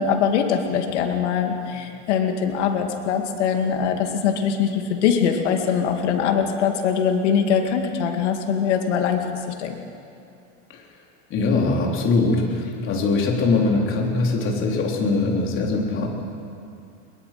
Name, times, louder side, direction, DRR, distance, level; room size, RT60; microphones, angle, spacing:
voice 1, 0.0-9.3 9.6-9.8, left 7 dB, 85° left, 4 dB, 2.6 m, -22 dB
voice 2, 11.3-16.1, left 3 dB, 35° left, 0 dB, 3.7 m, -22 dB
22.5 x 22.0 x 6.0 m, 2.5 s
supercardioid pair, 140°, 34 cm